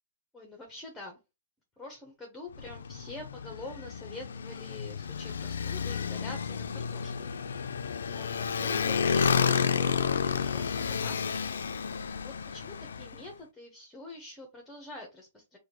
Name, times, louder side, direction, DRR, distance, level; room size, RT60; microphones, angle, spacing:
voice 1, 0.3-1.2 1.8-7.3 8.0-11.4 12.2-15.6, left 2 dB, 5° left, 2 dB, 0.8 m, -46 dB
Motorcycle, 2.5-13.2, left 6 dB, 85° left, 0.4 m, -31 dB
4.9 x 2.2 x 2.9 m, 0.27 s
hypercardioid pair, 150°, 0 cm